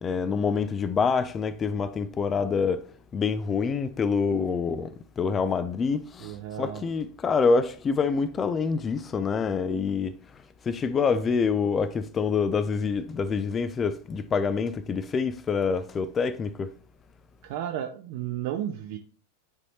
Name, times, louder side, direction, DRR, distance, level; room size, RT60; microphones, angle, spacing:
voice 1, 0.0-2.8 3.1-10.2 10.6-16.7, left 5 dB, 20° left, 0.4 m, -26 dB
voice 2, 6.2-6.8 17.4-19.0, right 11 dB, 50° right, 0.5 m, -33 dB
9.6 x 4.1 x 3.0 m
figure-of-eight pair, 90°, 0 cm